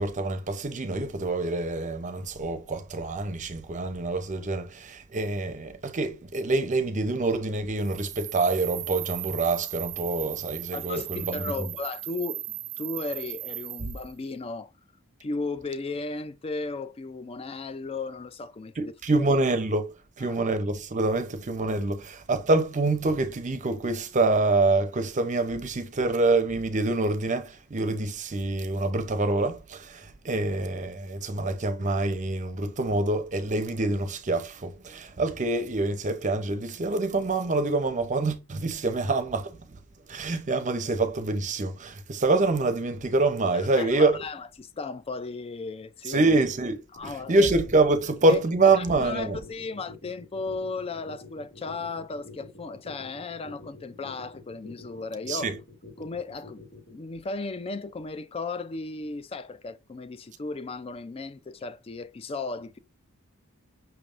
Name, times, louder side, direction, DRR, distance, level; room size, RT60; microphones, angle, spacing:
voice 1, 0.0-11.7 18.8-39.8 40.1-44.2 46.1-49.4 55.3-55.6, right 2 dB, 35° right, 0.6 m, -26 dB
sound 1, 7.8-14.1, right 15 dB, 90° right, 0.5 m, -37 dB
voice 2, 10.7-14.7 15.2-19.2 20.2-20.4 43.5-46.3 46.9-47.5 48.3-48.4 48.6-55.5 56.0-56.6 56.9-62.8, left 3 dB, 25° left, 0.4 m, -35 dB
sound 2, 47.0-57.0, left 2 dB, 55° left, 2.1 m, -47 dB
5.9 x 3.4 x 2.5 m
head